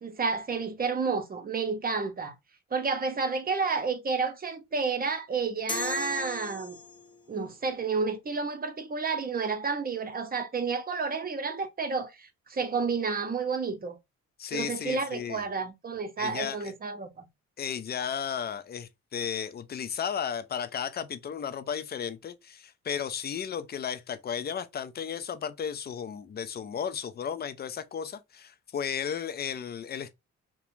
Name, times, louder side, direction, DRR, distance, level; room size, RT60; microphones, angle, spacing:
voice 1, 0.0-2.4 2.7-6.8 7.3-14.0 14.5-17.2, right 4 dB, 30° right, 0.6 m, -30 dB
sound 1, 5.7-7.2, left 4 dB, 15° left, 0.8 m, -36 dB
voice 2, 14.4-15.4 16.2-16.7 17.6-30.1, left 8 dB, 30° left, 0.4 m, -34 dB
2.4 x 2.2 x 2.9 m
cardioid pair, 75°, 31 cm